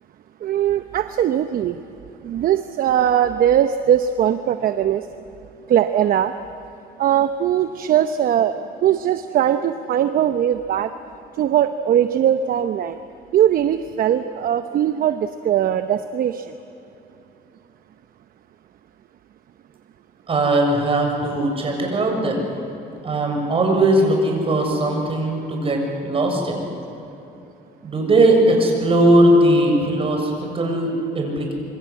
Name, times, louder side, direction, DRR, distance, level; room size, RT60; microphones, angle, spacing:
voice 1, 0.4-1.8 2.2-5.0 5.7-6.3 7.0-10.9 11.4-13.0 13.3-16.4, right 10 dB, 60° right, 10 dB, 0.9 m, -20 dB
voice 2, 20.3-22.5 23.0-26.7 27.8-31.5, right 1 dB, 35° right, 2 dB, 7.0 m, -19 dB
26.5 x 24.0 x 8.6 m, 2.9 s
cardioid pair, 110°, 17 cm